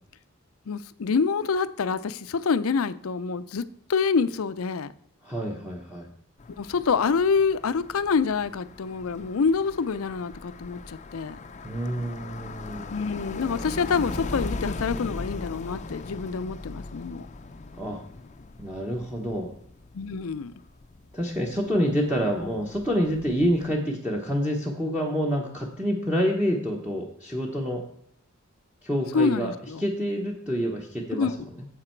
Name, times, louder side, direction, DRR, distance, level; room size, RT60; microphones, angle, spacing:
voice 1, 0.7-4.9 6.6-11.4 12.9-17.2 19.9-20.5 29.1-29.8 31.2-31.5, left 5 dB, 80° left, 0.5 m, -26 dB
voice 2, 5.2-6.1 11.6-12.9 17.8-18.0 18.6-19.5 21.1-27.8 28.8-31.3 31.6-31.7, equal, 5° right, 1.0 m, -27 dB
sound 1, 6.4-23.7, left 3 dB, 35° left, 0.5 m, -39 dB
9.7 x 7.3 x 4.5 m
head